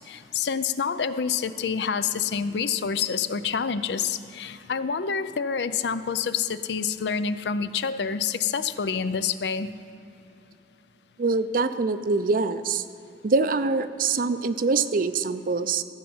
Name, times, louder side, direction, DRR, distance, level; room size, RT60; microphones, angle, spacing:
voice 1, 0.1-9.7, left 6 dB, 70° left, 13 dB, 0.5 m, -27 dB
voice 2, 11.2-12.8 13.2-15.8, right 4 dB, 50° right, 12 dB, 0.5 m, -24 dB
15.0 x 5.6 x 7.8 m, 2.8 s
head